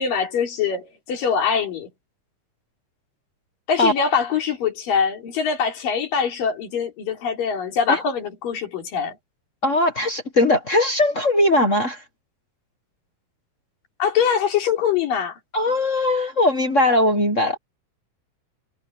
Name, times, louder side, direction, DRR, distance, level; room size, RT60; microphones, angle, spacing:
voice 1, 0.0-1.9 3.7-9.2 14.0-15.4, left 7 dB, 75° left, 5.3 m, -23 dB
voice 2, 9.6-12.0 15.5-17.6, left 1 dB, 55° left, 0.8 m, -19 dB
omnidirectional pair, 3.9 m